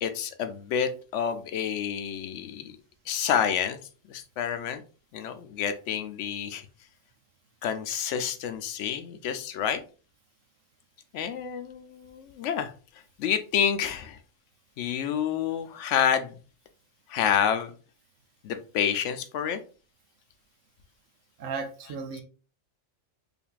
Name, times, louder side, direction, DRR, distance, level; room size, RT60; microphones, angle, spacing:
voice 1, 0.0-2.8 3.1-3.8 4.1-4.8 5.1-6.7 7.6-9.8 11.1-12.7 13.2-14.2 14.8-16.4 17.1-17.7 18.4-19.6, left 8 dB, 75° left, 9 dB, 0.9 m, -28 dB
voice 2, 21.4-22.2, right 4 dB, 85° right, 4 dB, 1.0 m, -35 dB
5.1 x 2.6 x 2.3 m, 0.37 s
omnidirectional pair, 1.3 m